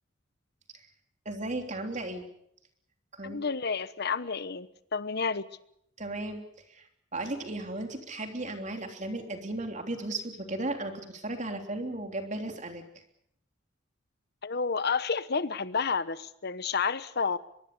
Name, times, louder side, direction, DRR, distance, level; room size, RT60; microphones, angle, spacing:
voice 1, 1.2-2.3 3.1-3.4 6.0-6.4 6.7-12.8, right 2 dB, 40° right, 4 dB, 3.2 m, -35 dB
voice 2, 3.2-5.5 14.4-17.4, left 5 dB, 55° left, 15 dB, 1.0 m, -30 dB
23.5 x 22.5 x 6.8 m, 0.73 s
head